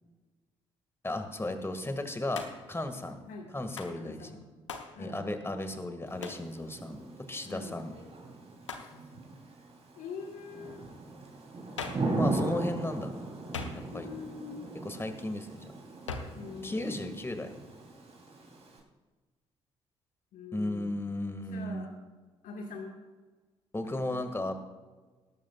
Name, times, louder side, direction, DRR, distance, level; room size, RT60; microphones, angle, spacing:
voice 1, 1.0-3.2 3.5-4.4 5.0-7.0 7.3-7.9 12.2-13.1 13.7-14.1 14.8-15.7 16.6-17.5 20.5-21.9 23.7-24.5, left 1 dB, 15° left, 7 dB, 1.9 m, -35 dB
Hands, 2.3-2.8 3.8-4.0 4.7-5.0 6.2-6.5 8.6-9.0 11.8-12.1 13.5-14.1 16.1-16.4, left 5 dB, 90° left, 0.8 m, -40 dB
voice 2, 4.0-4.5 4.9-5.2 7.4-7.8 8.7-9.2 9.9-10.8 13.9-14.7 16.3-17.1 17.5-17.6 20.3-20.9 21.5-21.9 22.4-22.9 23.9-24.2, left 4 dB, 60° left, 1 dB, 1.7 m, -44 dB
Thunder / Rain, 6.1-18.8, right 2 dB, 40° right, 3.4 m, -38 dB
18.0 x 13.5 x 2.4 m, 1.3 s
figure-of-eight pair, 45°, 15 cm